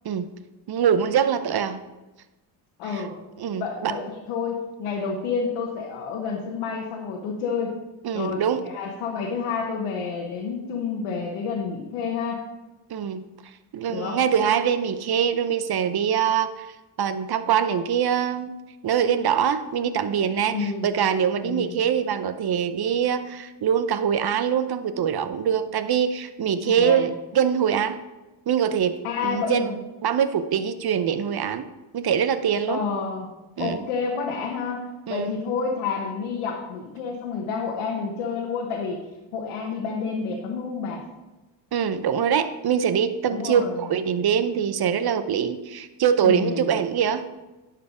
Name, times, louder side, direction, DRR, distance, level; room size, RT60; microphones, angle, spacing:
voice 1, 0.7-1.8 2.9-3.1 3.4-3.9 8.0-8.6 12.9-13.2 13.7-16.7 17.0-18.5 18.8-28.0 28.5-29.0 29.2-29.7 30.0-31.6 31.9-32.8 33.6-33.8 35.1-35.3 41.7-47.2, right 8 dB, 50° right, 12 dB, 0.8 m, -23 dB
voice 2, 2.8-3.1 3.6-7.8 8.1-12.4 13.9-14.2 20.5-20.9 21.4-21.7 26.6-27.1 29.0-29.7 32.7-33.3 33.6-39.0 39.3-41.0 43.2-43.9 46.2-46.8, left 5 dB, 90° left, 0 dB, 1.2 m, -29 dB
10.5 x 4.7 x 5.0 m, 1.1 s
supercardioid pair, 65°, 50 cm